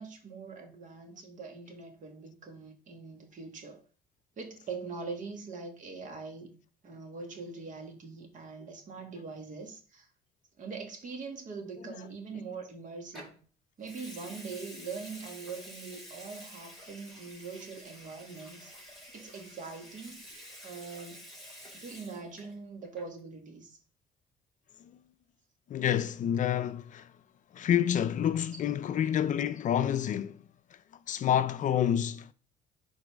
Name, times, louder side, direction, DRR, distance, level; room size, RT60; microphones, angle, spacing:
voice 1, 0.0-3.8 4.4-6.6 6.8-10.1 10.6-13.4 13.8-18.7 19.1-21.2 21.7-23.8, right 4 dB, 50° right, 2.0 m, -43 dB
Water tap faucet / Sink (filling or washing) / Liquid, 13.1-13.4 13.8-22.6 22.8-23.2, equal, ahead, 4.6 m, -49 dB
voice 2, 25.7-27.1 27.5-30.4 31.1-32.3, left 10 dB, 50° left, 0.5 m, -28 dB
11.0 x 4.0 x 3.5 m
cardioid pair, 110°, 17 cm